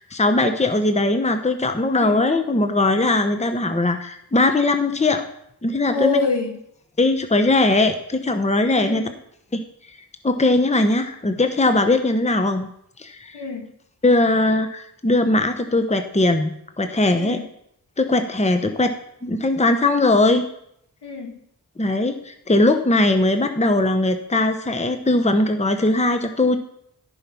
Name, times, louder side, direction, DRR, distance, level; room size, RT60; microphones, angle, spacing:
voice 1, 0.0-5.2 5.6-6.2 7.0-9.0 9.5-9.6 10.2-12.7 13.0-13.4 14.0-17.4 18.0-18.9 19.2-20.5 21.8-26.6, left 2 dB, 15° left, 7 dB, 0.9 m, -20 dB
voice 2, 5.9-6.6 8.7-9.1 13.3-13.7 17.2-17.5 21.0-21.4, left 3 dB, 75° left, 1 dB, 2.1 m, -26 dB
10.5 x 5.6 x 6.1 m, 0.73 s
cardioid pair, 40°, 41 cm